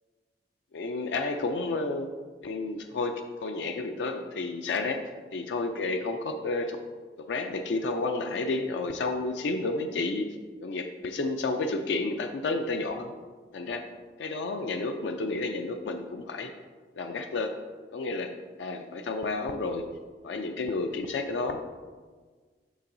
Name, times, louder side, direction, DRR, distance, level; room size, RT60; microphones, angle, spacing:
voice 1, 0.7-2.1 2.4-5.0 5.3-6.8 7.2-10.3 10.6-13.1 13.5-13.8 14.2-16.5 17.0-17.5 17.9-18.3 18.6-19.9 20.2-21.6, left 3 dB, 80° left, 5 dB, 0.4 m, -31 dB
6.9 x 5.4 x 2.6 m, 1.5 s
head